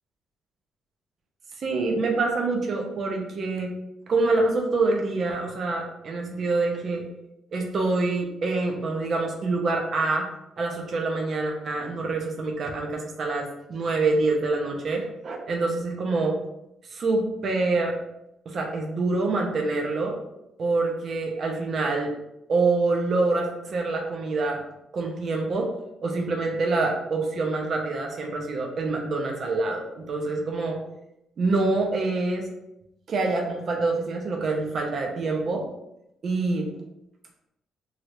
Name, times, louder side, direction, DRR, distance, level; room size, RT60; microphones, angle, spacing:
voice 1, 1.6-3.7 4.1-7.0 7.5-10.3 10.6-16.4 16.9-18.0 18.5-20.2 20.6-22.1 22.5-24.6 24.9-25.7 26.0-30.8 31.4-32.5 33.1-35.7 36.2-36.7, right 3 dB, 40° right, 1 dB, 0.5 m, -26 dB
3.1 x 2.4 x 2.9 m, 0.84 s
cardioid pair, 155°, 0 cm